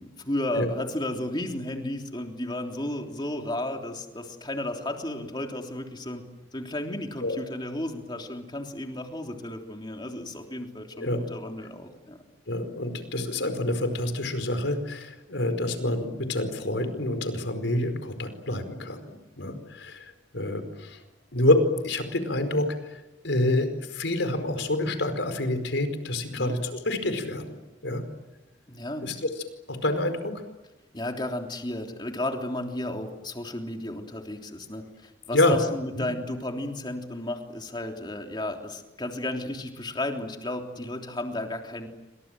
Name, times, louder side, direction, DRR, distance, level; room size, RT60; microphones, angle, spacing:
voice 1, 0.0-6.2 6.5-12.2 26.3-26.6 28.7-29.1 30.9-41.9, left 1 dB, 25° left, 3 dB, 3.4 m, -33 dB
voice 2, 12.5-20.0 20.3-21.0 21.3-22.9 23.2-27.6 27.8-28.0 29.0-29.3 29.7-30.3 35.3-35.6 36.0-36.1, left 1 dB, 80° left, 8 dB, 4.8 m, -27 dB
28.5 x 26.0 x 7.7 m, 1.0 s
head